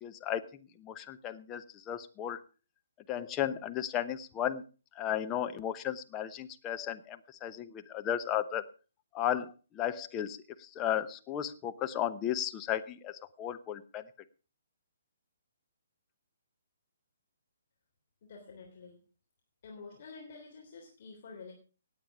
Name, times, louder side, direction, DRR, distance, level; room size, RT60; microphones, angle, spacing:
voice 1, 0.0-0.4 0.8-2.4 3.1-4.6 5.0-8.6 9.1-10.4 10.8-14.0, left 10 dB, 20° left, 8 dB, 0.9 m, -34 dB
voice 2, 18.2-19.0 19.6-21.5, left 4 dB, 45° left, 1 dB, 3.4 m, -49 dB
17.5 x 8.5 x 4.9 m, 0.36 s
figure-of-eight pair, 130°, 0 cm